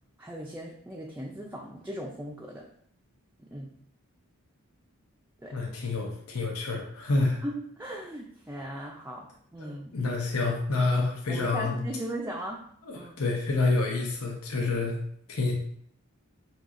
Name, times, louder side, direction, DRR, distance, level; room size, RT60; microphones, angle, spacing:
voice 1, 0.2-2.7 3.4-3.7 5.4-5.6 7.4-9.9 11.3-12.6 12.9-13.2, right 1 dB, 10° right, -2 dB, 0.3 m, -38 dB
voice 2, 5.5-7.4 9.6-11.8 12.9-14.9 15.3-15.5, left 3 dB, 90° left, 0 dB, 0.8 m, -28 dB
5.5 x 2.9 x 2.5 m, 0.65 s
head